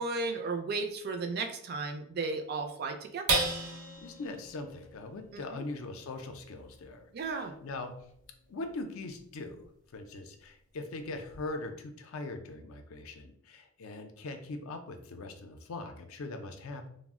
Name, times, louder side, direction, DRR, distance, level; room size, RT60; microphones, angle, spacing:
voice 1, 0.0-3.4 5.3-5.6 7.1-7.5, right 3 dB, 45° right, 5 dB, 0.3 m, -34 dB
sound 1, 3.3-10.0 10.5-10.6 11.0-11.4, right 3 dB, 85° right, 0.7 m, -38 dB
voice 2, 4.0-7.1 7.4-8.0 8.5-9.7 9.9-16.9, left 2 dB, 65° left, 7 dB, 0.4 m, -41 dB
2.4 x 2.0 x 3.5 m, 0.69 s
head